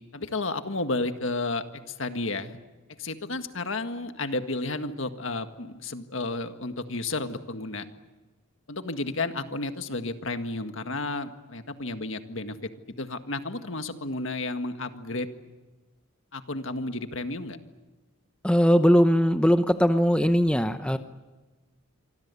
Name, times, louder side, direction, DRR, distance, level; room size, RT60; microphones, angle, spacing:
voice 1, 0.1-2.6 3.0-7.9 8.7-15.3 16.3-17.6, left 2 dB, 65° left, 8 dB, 1.8 m, -32 dB
voice 2, 18.4-21.0, equal, 5° left, 8 dB, 0.8 m, -20 dB
26.0 x 25.0 x 8.4 m, 1.2 s
head